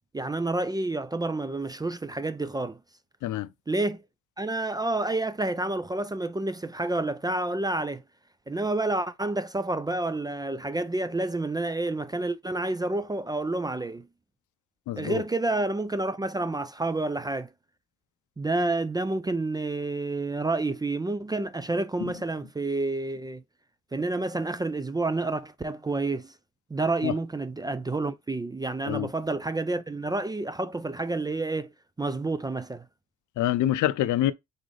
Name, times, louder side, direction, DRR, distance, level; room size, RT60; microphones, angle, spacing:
voice 1, 0.1-2.8 3.7-4.0 4.4-8.0 8.5-14.1 15.0-17.5 18.4-23.4 23.9-26.3 26.7-31.7 32.0-32.8, right 2 dB, 15° right, 0.3 m, -29 dB
voice 2, 14.9-15.2 22.0-22.1 27.0-27.1 28.8-29.1 33.4-34.3, left 13 dB, 80° left, 0.6 m, -26 dB
3.8 x 3.8 x 3.2 m
cardioid pair, 90°, 30 cm